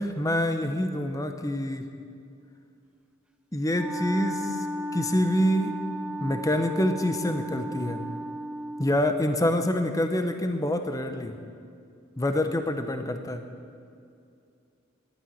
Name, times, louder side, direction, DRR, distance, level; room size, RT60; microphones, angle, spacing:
voice 1, 0.0-1.9 3.5-4.7 4.9-5.7 6.2-8.0 8.8-11.4 12.2-13.4, left 1 dB, 15° left, 7 dB, 0.8 m, -26 dB
Wind instrument woodwind instrument, 3.7-9.1, right 1 dB, 5° right, 0.4 m, -35 dB
11.5 x 9.9 x 9.2 m, 2.5 s
head